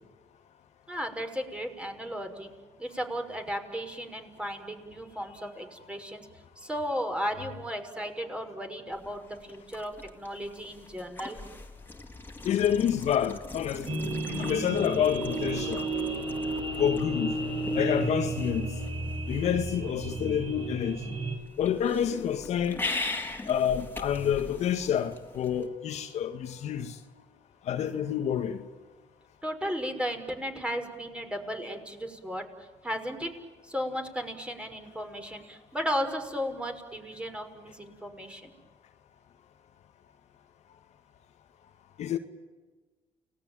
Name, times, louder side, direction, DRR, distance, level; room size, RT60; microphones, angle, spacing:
voice 1, 0.9-2.5 2.8-6.3 6.6-11.4 29.4-32.5 32.8-33.3 33.6-38.5, equal, 10° right, 5.9 m, -35 dB
sound 1, 8.9-25.7, left 3 dB, 15° left, 3.9 m, -41 dB
voice 2, 12.5-15.9 16.8-17.3 17.7-18.7 19.3-21.2 21.6-22.8 23.5-27.0 27.7-28.6 42.0-42.2, left 9 dB, 70° left, 1.8 m, -28 dB
sound 2, 13.9-21.3, right 2 dB, 50° right, 7.5 m, -32 dB
30.0 x 20.0 x 9.2 m
supercardioid pair, 70°, 12 cm